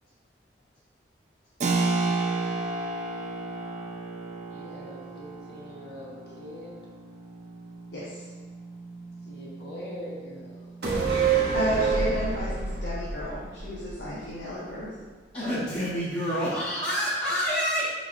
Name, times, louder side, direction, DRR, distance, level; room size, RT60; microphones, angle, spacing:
Keyboard (musical), 1.6-12.0, right 3 dB, 40° right, 0.3 m, -33 dB
voice 1, 4.5-6.8 9.2-10.6, equal, 65° left, -5 dB, 1.1 m, -42 dB
voice 2, 7.9-8.3 11.5-14.9, equal, 80° left, -8 dB, 0.8 m, -32 dB
sound 1, 10.8-14.4 14.7-14.8, right 5 dB, 65° right, 0.8 m, -27 dB
voice 3, 15.3-17.9, equal, 35° left, -11 dB, 0.8 m, -27 dB
4.6 x 4.1 x 2.4 m, 1.4 s
head